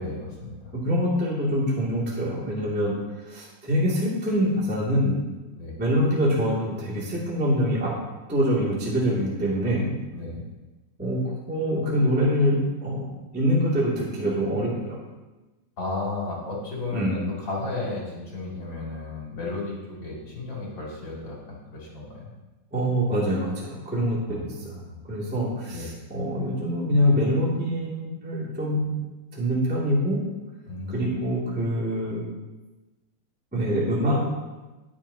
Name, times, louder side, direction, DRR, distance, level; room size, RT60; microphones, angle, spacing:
voice 1, 0.0-0.7 5.5-5.8 10.1-10.4 15.8-22.2 24.3-25.0 25.7-25.9 30.7-31.1, left 2 dB, 35° left, -5 dB, 3.2 m, -34 dB
voice 2, 0.8-3.0 3.3-5.1 5.8-7.9 8.3-9.8 11.0-15.0 16.9-17.2 22.7-24.7 25.1-29.0 29.3-30.2 30.9-32.2 33.5-34.2, equal, 5° right, -6 dB, 1.8 m, -25 dB
19.5 x 7.0 x 2.9 m, 1.1 s
omnidirectional pair, 4.3 m